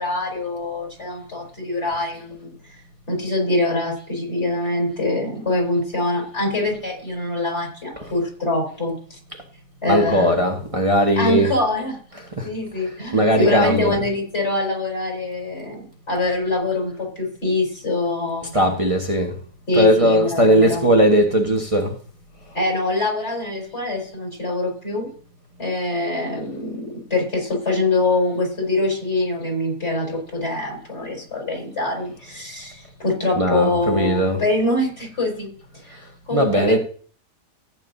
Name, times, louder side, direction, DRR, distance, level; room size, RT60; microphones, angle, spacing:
voice 1, 0.0-2.5 3.1-9.2 9.8-10.4 11.2-12.0 12.4-18.5 19.7-20.8 22.5-25.1 25.6-35.5 35.8-36.8, left 2 dB, 40° left, 5.0 m, -24 dB
voice 2, 9.9-11.5 12.1-12.5 12.8-14.0 18.5-19.4 19.7-21.9 33.3-34.5 36.3-36.8, equal, 20° right, 1.3 m, -18 dB
15.0 x 9.1 x 2.7 m
omnidirectional pair, 1.8 m